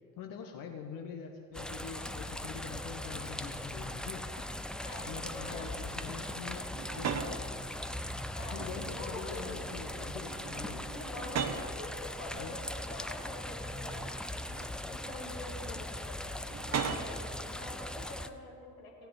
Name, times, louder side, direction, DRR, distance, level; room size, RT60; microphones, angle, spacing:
voice 1, 0.2-4.3 4.9-7.4 8.2-10.9 12.3-12.6, left 6 dB, 50° left, 3 dB, 1.1 m, -44 dB
sound 1, 1.5-18.3, left 1 dB, ahead, 0.4 m, -40 dB
voice 2, 4.8-5.7 8.4-8.7 8.9-9.6 10.9-12.6 12.9-16.3 16.7-19.1, left 2 dB, 75° left, -1 dB, 1.9 m, -46 dB
sound 2, 6.7-7.4 8.5-9.2 9.5-9.9 10.2-11.8 12.6-12.7 13.8-14.8 16.5-17.2, right 7 dB, 40° right, 1.0 m, -38 dB
17.0 x 10.5 x 4.0 m, 2.3 s
figure-of-eight pair, 45°, 43 cm